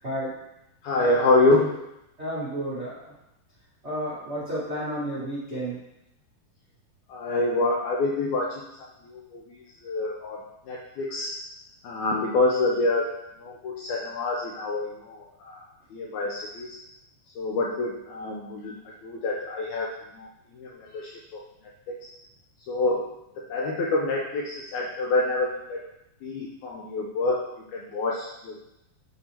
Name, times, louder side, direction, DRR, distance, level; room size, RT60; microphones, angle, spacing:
voice 1, 0.0-0.4 2.2-3.1 3.8-5.8, right 1 dB, 65° right, -10 dB, 0.6 m, -31 dB
voice 2, 0.8-1.8 7.1-8.9 9.1-9.4 9.8-11.3 11.8-13.1 13.4-15.6 15.9-16.8 17.4-20.3 20.5-21.4 21.9-22.1 22.7-25.8 26.2-28.6, left 2 dB, 80° left, -1 dB, 1.7 m, -27 dB
7.8 x 4.6 x 2.8 m, 0.87 s
omnidirectional pair, 4.0 m